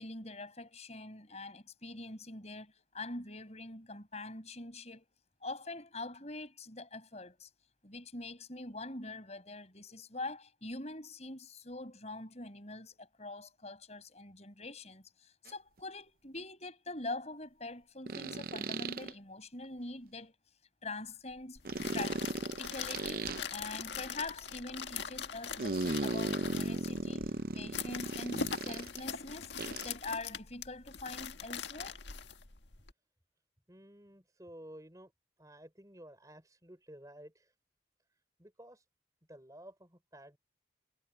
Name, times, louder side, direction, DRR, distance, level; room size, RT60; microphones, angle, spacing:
voice 1, 0.0-5.1 5.4-7.5 7.8-20.3 20.8-21.6 21.9-22.2 22.6-29.5 29.8-32.0, left 2 dB, 35° left, 6.0 m, -44 dB
sound 1, 15.5-15.6 18.1-19.1 21.6-23.4 25.6-29.0 29.6-29.9, right 3 dB, 50° right, 0.7 m, -36 dB
sound 2, 21.6-32.9, left 6 dB, 70° left, 1.7 m, -42 dB
voice 2, 33.7-35.1 35.4-37.5 38.4-38.8 39.3-40.4, right 1 dB, 20° right, 5.7 m, -53 dB
head